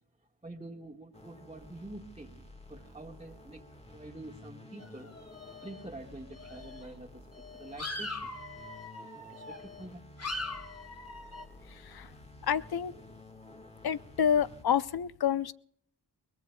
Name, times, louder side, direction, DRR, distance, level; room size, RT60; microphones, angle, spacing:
voice 1, 0.4-3.6 3.9-5.1 5.6-8.3 9.2-10.0 10.5-10.6, right 2 dB, 15° right, -3 dB, 1.6 m, -47 dB
sound 1, 1.1-14.7, left 1 dB, 15° left, 1.5 m, -52 dB
sound 2, 4.8-6.0 6.3-6.9 7.4-9.9 10.2-11.5, left 2 dB, 35° left, 2.0 m, -41 dB
voice 2, 11.7-12.1 12.4-12.9 13.8-15.5, left 8 dB, 60° left, 16 dB, 0.6 m, -29 dB
22.5 x 20.0 x 2.2 m, 0.66 s
cardioid pair, 45°, 42 cm